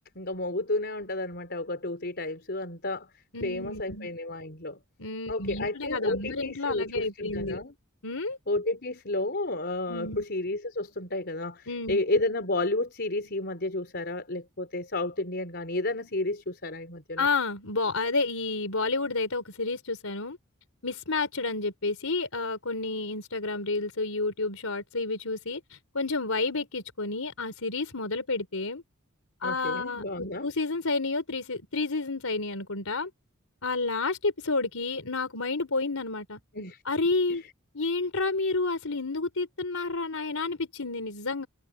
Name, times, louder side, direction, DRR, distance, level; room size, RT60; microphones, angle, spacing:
voice 1, 0.1-4.8 5.3-7.7 8.5-17.3 29.4-30.5 36.5-36.8 37.3-37.4, left 2 dB, 50° left, 4.3 m, -31 dB
voice 2, 3.3-4.1 5.0-7.6 8.0-8.4 9.9-10.2 11.7-12.0 17.2-20.4 20.8-28.8 29.4-33.1 33.6-36.4 36.9-37.4 37.7-41.5, left 3 dB, 85° left, 3.8 m, -30 dB
head